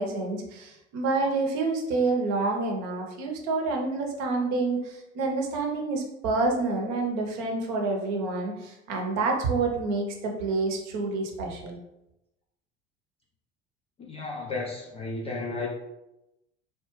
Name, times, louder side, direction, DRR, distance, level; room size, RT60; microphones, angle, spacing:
voice 1, 0.0-11.8, right 3 dB, 50° right, 1 dB, 0.8 m, -28 dB
voice 2, 14.0-15.7, left 3 dB, 20° left, -1 dB, 0.3 m, -33 dB
3.5 x 2.2 x 3.0 m, 0.91 s
figure-of-eight pair, 65°, 36 cm